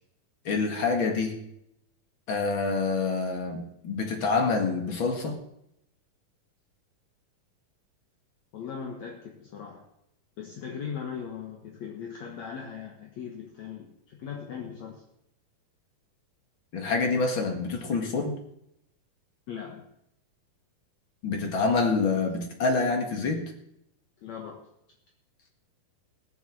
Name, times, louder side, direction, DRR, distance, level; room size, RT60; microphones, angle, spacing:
voice 1, 0.4-1.4 2.3-5.4 16.7-18.4 21.2-23.5, left 4 dB, 40° left, 4 dB, 2.2 m, -27 dB
voice 2, 8.5-9.9 10.4-15.0 19.5-19.8 24.2-24.6, left 7 dB, 60° left, 1 dB, 2.4 m, -39 dB
18.0 x 7.2 x 7.7 m, 0.78 s
omnidirectional pair, 4.1 m